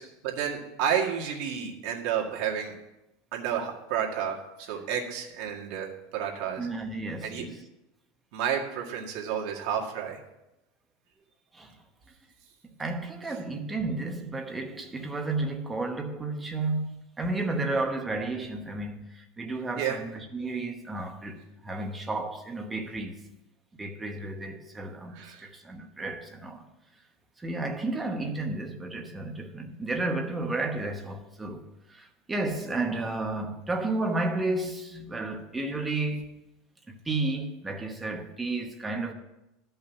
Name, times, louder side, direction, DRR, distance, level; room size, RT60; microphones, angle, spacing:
voice 1, 0.0-2.7 3.3-6.7 7.2-7.5 8.3-10.2 19.8-20.0 25.1-25.5, right 8 dB, 50° right, 1.9 m, -31 dB
voice 2, 6.6-7.6 11.5-11.8 12.8-23.2 23.8-26.6 27.4-36.3 36.9-39.1, right 2 dB, 10° right, 0.9 m, -32 dB
12.0 x 5.6 x 7.0 m
supercardioid pair, 175°, 0 cm